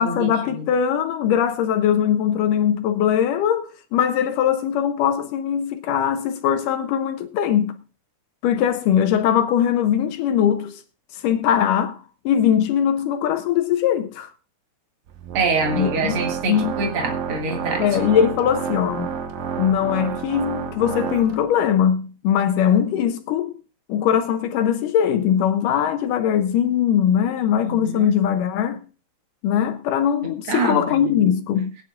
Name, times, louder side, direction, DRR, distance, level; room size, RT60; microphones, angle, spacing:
voice 1, 0.0-7.8 8.4-10.8 11.1-12.0 12.3-14.3 15.7-16.2 16.5-16.7 17.8-19.1 19.6-23.5 23.9-28.8 29.4-31.7, left 9 dB, 80° left, 2.0 m, -21 dB
Organ, 15.1-21.7, right 7 dB, 70° right, 2.8 m, -30 dB
voice 2, 15.3-17.8 27.6-28.1 30.5-30.8, right 3 dB, 45° right, 2.3 m, -25 dB
21.5 x 9.6 x 2.4 m
omnidirectional pair, 4.3 m